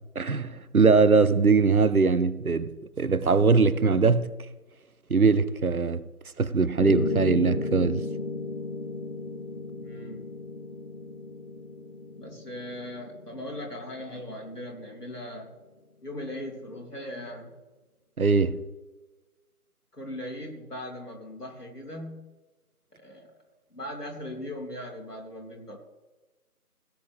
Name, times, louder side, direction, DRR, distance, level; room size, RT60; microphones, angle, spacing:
voice 1, 0.2-2.7 3.0-4.3 5.1-6.0 6.4-8.0 18.2-18.6, right 4 dB, 70° right, 0.8 m, -21 dB
Piano, 6.8-14.9, left 3 dB, 45° left, 1.6 m, -34 dB
voice 2, 9.7-10.3 12.2-15.5 16.0-17.6 19.9-22.3 23.0-23.3 23.7-25.8, left 1 dB, 85° left, 3.3 m, -39 dB
16.5 x 8.6 x 3.5 m
figure-of-eight pair, 165°, 46 cm